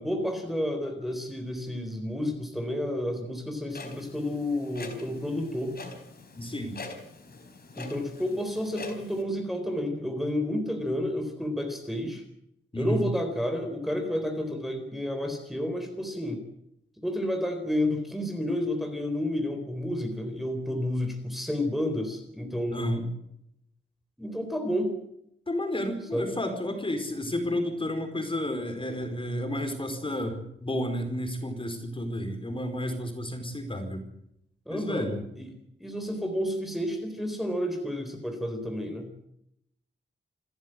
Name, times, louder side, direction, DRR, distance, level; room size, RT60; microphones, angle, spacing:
voice 1, 0.0-5.8 7.7-12.2 12.8-16.4 17.0-22.9 24.2-25.0 26.1-26.3 34.7-35.1 35.3-35.5 35.8-39.1, left 1 dB, ahead, 4 dB, 4.1 m, -30 dB
Clock, 3.7-9.2, left 3 dB, 55° left, 4.2 m, -44 dB
voice 2, 6.3-6.8 12.7-13.1 22.7-23.1 25.5-34.0 34.7-35.2, left 1 dB, 25° left, 6 dB, 4.8 m, -31 dB
28.0 x 14.0 x 7.9 m, 0.77 s
wide cardioid pair, 125°, 20 cm